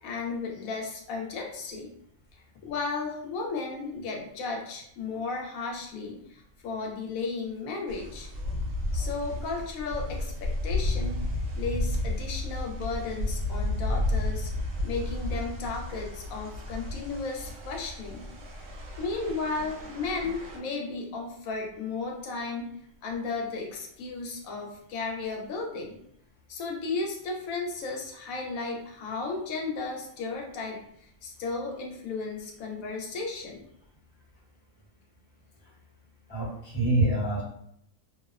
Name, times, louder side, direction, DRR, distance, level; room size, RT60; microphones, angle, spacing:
voice 1, 0.0-1.9 2.6-8.3 8.9-11.2 11.6-14.5 14.8-18.2 19.0-22.7 23.0-26.0 26.5-30.8 31.2-33.6, left 4 dB, 90° left, 0 dB, 1.0 m, -34 dB
sound 1, 7.9-20.6, left 2 dB, 70° right, 0.9 m, -32 dB
voice 2, 36.3-37.4, right 2 dB, 60° left, -4 dB, 1.0 m, -25 dB
2.6 x 2.0 x 2.3 m, 0.72 s
omnidirectional pair, 1.4 m